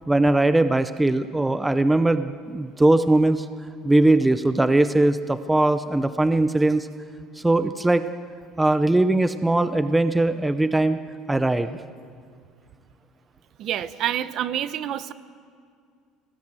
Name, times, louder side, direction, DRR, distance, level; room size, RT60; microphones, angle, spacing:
voice 1, 0.1-3.5 3.8-6.9 7.3-8.1 8.6-11.0 11.3-11.8, right 2 dB, 5° right, 11 dB, 0.5 m, -20 dB
voice 2, 13.6-15.1, right 11 dB, 45° right, 14 dB, 0.8 m, -27 dB
24.5 x 19.0 x 7.7 m, 2.2 s
cardioid pair, 160°, 0 cm